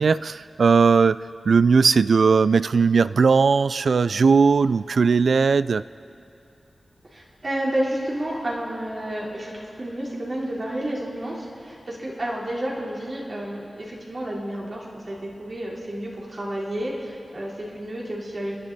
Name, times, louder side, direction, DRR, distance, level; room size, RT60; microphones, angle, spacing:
voice 1, 0.0-5.8, right 5 dB, 80° right, 16 dB, 0.3 m, -18 dB
voice 2, 7.1-18.5, right 1 dB, 50° right, -5 dB, 3.8 m, -30 dB
30.0 x 11.0 x 4.2 m, 2.7 s
cardioid pair, 55°, 0 cm